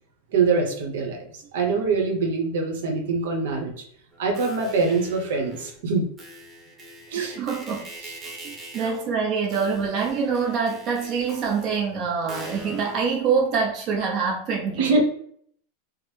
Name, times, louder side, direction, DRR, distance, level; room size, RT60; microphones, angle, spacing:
voice 1, 0.3-3.7 4.2-6.1 7.1-7.4 8.0-8.1 14.8-15.0, right 4 dB, 75° right, 2 dB, 1.0 m, -24 dB
sound 1, 4.1-5.8 6.2-13.1, right 2 dB, 20° right, 1.1 m, -42 dB
voice 2, 7.2-7.9 8.2-15.0, right 5 dB, 40° right, -1 dB, 0.7 m, -25 dB
4.9 x 2.1 x 3.3 m, 0.62 s
supercardioid pair, 135°, 0 cm